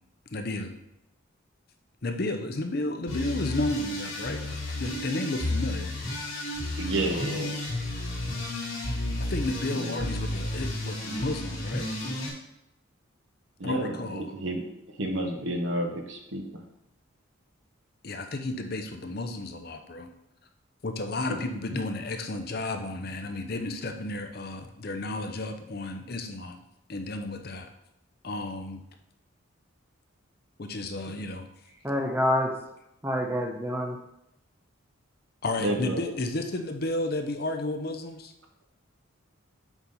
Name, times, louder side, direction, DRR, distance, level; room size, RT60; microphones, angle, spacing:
voice 1, 0.3-0.7 2.0-6.0 7.1-7.4 9.3-12.0 13.6-14.3 18.0-20.1 20.8-26.6 26.9-27.7 28.2-28.8 30.6-31.5 35.4-38.3, left 2 dB, 45° left, 6 dB, 0.7 m, -32 dB
sound 1, 3.1-12.3, left 1 dB, 85° left, 2.4 m, -32 dB
voice 2, 6.8-7.5 9.7-10.1 13.6-14.6 15.0-16.6 21.3-21.4 21.7-22.0 31.1-31.2 35.6-36.0, right 1 dB, 70° right, 3 dB, 1.2 m, -31 dB
voice 3, 31.8-32.5 33.0-34.0, left 1 dB, 10° right, 2 dB, 0.7 m, -27 dB
7.1 x 5.4 x 4.2 m, 0.83 s
head